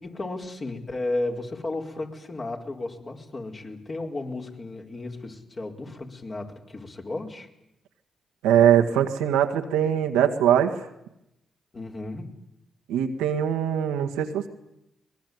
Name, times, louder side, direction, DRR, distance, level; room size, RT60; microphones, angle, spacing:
voice 1, 0.0-7.5 11.7-12.4, left 2 dB, 40° left, 2 dB, 4.5 m, -34 dB
voice 2, 8.4-10.8 12.9-14.5, right 9 dB, 90° right, 5 dB, 1.8 m, -22 dB
23.0 x 21.0 x 9.5 m, 0.84 s
supercardioid pair, 50°, 0 cm